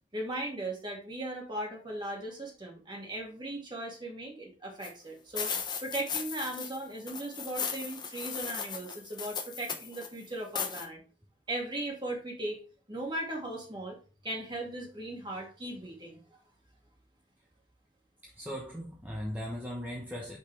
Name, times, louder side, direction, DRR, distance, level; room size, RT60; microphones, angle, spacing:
voice 1, 0.1-5.5 5.8-11.0 11.5-12.6 12.9-14.0 14.2-16.2, right 1 dB, 25° right, 2.1 m, -38 dB
sound 1, 4.8-4.9 5.4-6.8 7.1-10.1 10.6-10.9, left 6 dB, 25° left, 0.8 m, -37 dB
voice 2, 18.4-20.4, equal, 10° right, 1.1 m, -38 dB
6.5 x 5.3 x 3.3 m
head